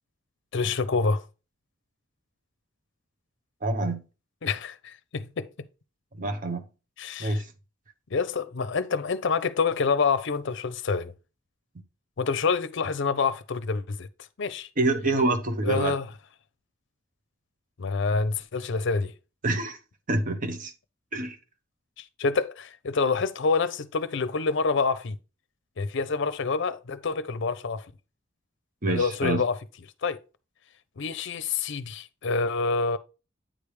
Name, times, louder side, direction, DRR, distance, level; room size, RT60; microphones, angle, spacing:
voice 1, 0.5-1.3 4.4-5.5 7.0-7.4 8.1-11.1 12.2-14.1 14.4-14.7 15.6-16.1 17.8-19.1 22.0-25.2 25.8-27.8 28.9-29.6 30.0-30.2 31.0-33.0, left 4 dB, 65° left, 0.6 m, -27 dB
voice 2, 3.6-4.0 6.1-6.6 7.2-7.5 14.8-16.0 19.4-19.8 20.1-20.7 21.1-21.4 28.8-29.4, right 2 dB, 40° right, 0.9 m, -26 dB
9.0 x 3.4 x 4.7 m
head